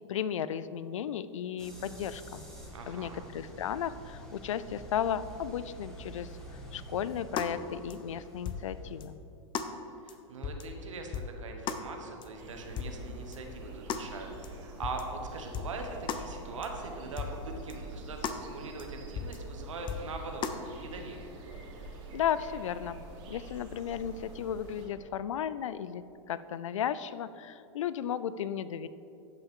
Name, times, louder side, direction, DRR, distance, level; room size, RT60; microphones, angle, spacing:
voice 1, 0.1-2.4 2.9-6.3 6.7-9.2 22.1-23.0 23.3-28.9, left 9 dB, 90° left, 15 dB, 0.4 m, -34 dB
sound 1, 1.6-9.0, right 1 dB, 5° left, 1.9 m, -47 dB
voice 2, 2.7-3.3 10.0-21.3, right 3 dB, 90° right, 3 dB, 1.2 m, -42 dB
sound 2, 7.4-7.5 7.9-8.0 8.5-8.7 9.0-9.1 9.5-9.7 10.1-10.2 10.4-10.7 11.1-11.3 11.7-11.8 12.2-12.3 12.8-13.0 13.3-13.4 13.9-14.1 14.4-14.5 14.8-15.1 15.5-15.8 16.1-16.2 16.6-16.7 17.2-17.4 17.7-17.8 18.2-18.4 18.8-18.9 19.2-19.4 19.9-20.1 20.4-20.6, left 7 dB, 30° left, 0.6 m, -35 dB
sound 3, 12.4-24.9, right 2 dB, 55° right, 1.9 m, -46 dB
12.0 x 5.7 x 3.7 m, 2.8 s
hypercardioid pair, 110°, 16 cm